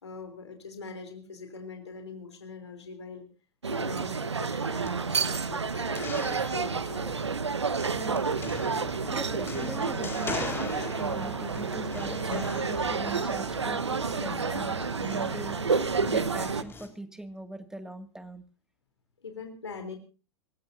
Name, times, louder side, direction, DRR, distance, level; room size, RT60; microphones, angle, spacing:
voice 1, 0.0-3.3 3.7-7.4 19.2-20.0, left 4 dB, 80° left, 6 dB, 3.4 m, -42 dB
sound 1, 3.6-16.6, right 5 dB, 85° right, 1.0 m, -30 dB
sound 2, 4.8-16.9, left 4 dB, 15° left, 4.4 m, -43 dB
voice 2, 7.9-8.2 9.1-18.4, right 1 dB, 5° right, 9 dB, 2.1 m, -41 dB
Acoustic guitar, 8.3-16.3, left 9 dB, 50° left, 6.6 m, -45 dB
27.0 x 15.5 x 2.7 m, 0.35 s
figure-of-eight pair, 100°, 14 cm